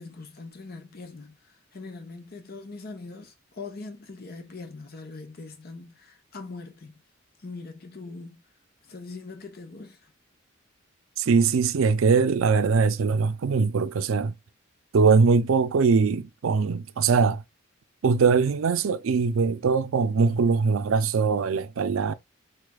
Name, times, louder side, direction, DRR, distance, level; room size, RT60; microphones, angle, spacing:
voice 1, 0.0-7.0 7.4-8.4 8.8-10.1, left 3 dB, 50° left, 0.8 m, -42 dB
voice 2, 11.2-14.3 14.9-17.4 18.0-22.1, right 5 dB, 80° right, 0.4 m, -22 dB
4.1 x 3.2 x 2.3 m
head